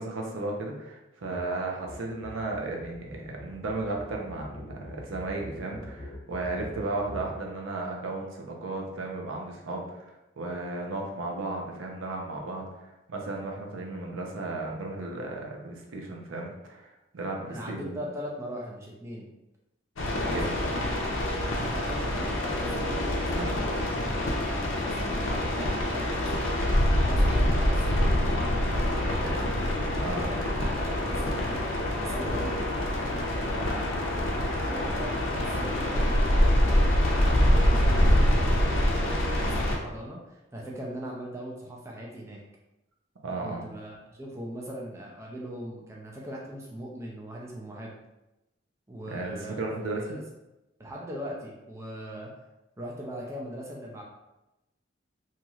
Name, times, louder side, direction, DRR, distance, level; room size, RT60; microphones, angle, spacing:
voice 1, 0.0-10.1 10.4-18.0 20.3-20.5 23.3-23.5 30.0-30.2 43.2-43.7 49.1-50.2, right 2 dB, 85° right, 0 dB, 0.6 m, -34 dB
sound 1, 1.2-1.5 1.7-7.4, left 1 dB, 25° left, 0.7 m, -43 dB
voice 2, 17.5-19.3 20.1-20.4 21.4-26.1 26.9-28.0 28.3-29.5 29.8-31.7 32.0-32.5 33.5-42.4 43.4-47.9 48.9-50.2 50.8-52.4 52.8-54.0, equal, 15° right, -3 dB, 0.4 m, -40 dB
sound 2, 20.0-39.8, left 1 dB, 85° left, 0.6 m, -25 dB
2.9 x 2.8 x 2.3 m, 0.96 s
head